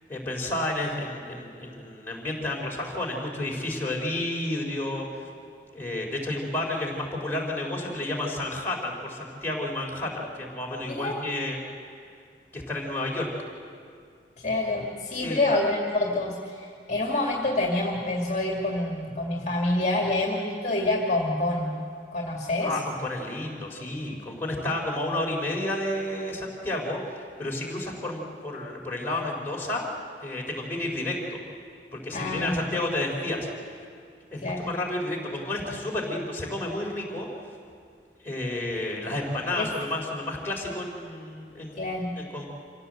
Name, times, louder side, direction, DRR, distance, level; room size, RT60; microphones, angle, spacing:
voice 1, 0.1-5.2 5.7-11.6 12.5-13.3 15.1-15.4 22.6-29.9 30.2-31.4 31.9-33.5 34.3-37.3 38.2-41.8 42.2-42.5, left 1 dB, 10° left, -3 dB, 4.2 m, -31 dB
voice 2, 10.8-11.2 14.4-21.8 22.1-22.7 32.1-32.7 34.4-34.7 39.6-39.7 41.8-42.1, left 2 dB, 40° left, -1 dB, 2.2 m, -27 dB
26.5 x 16.5 x 7.8 m, 2.2 s
head